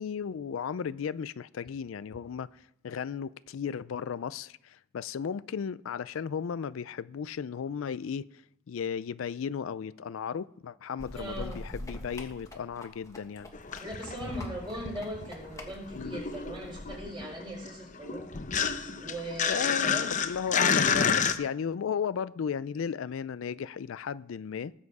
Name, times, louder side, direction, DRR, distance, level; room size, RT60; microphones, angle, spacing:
voice 1, 0.0-8.3 8.7-13.5 15.9-16.2 19.5-24.7, left 7 dB, 75° left, 0.4 m, -35 dB
sound 1, 11.0-17.0, left 1 dB, 15° left, 1.5 m, -45 dB
voice 2, 11.1-11.6 13.8-18.3 19.0-20.1, right 1 dB, 25° right, 4.5 m, -39 dB
sound 2, 13.5-15.5 15.7-21.4, left 6 dB, 35° left, 0.7 m, -30 dB
19.5 x 7.4 x 4.8 m
head